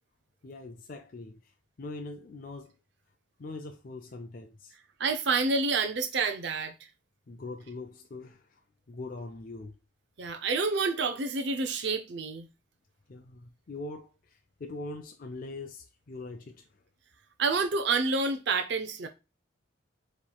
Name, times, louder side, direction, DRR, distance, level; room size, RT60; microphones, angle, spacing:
voice 1, 0.4-2.7 3.4-4.7 7.3-9.8 13.1-16.7, left 2 dB, 40° left, 0.4 m, -42 dB
voice 2, 5.0-6.7 10.2-12.5 17.4-19.1, right 4 dB, 55° right, 0.6 m, -28 dB
7.1 x 3.1 x 2.3 m
head